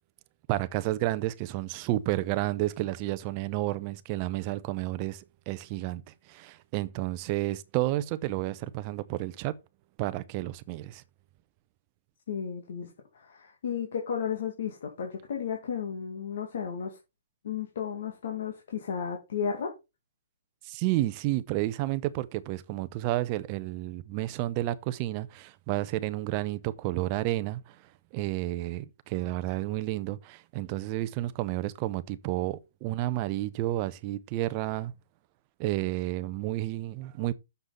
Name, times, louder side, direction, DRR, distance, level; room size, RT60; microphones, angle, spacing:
voice 1, 0.5-6.0 6.3-9.6 10.0-11.0 20.6-27.8 28.1-34.9 35.6-37.3, right 16 dB, 25° right, 0.7 m, -31 dB
voice 2, 12.3-17.0 17.4-19.7, left 7 dB, 60° left, 2.2 m, -34 dB
6.8 x 6.1 x 5.6 m
hypercardioid pair, 165°, 0 cm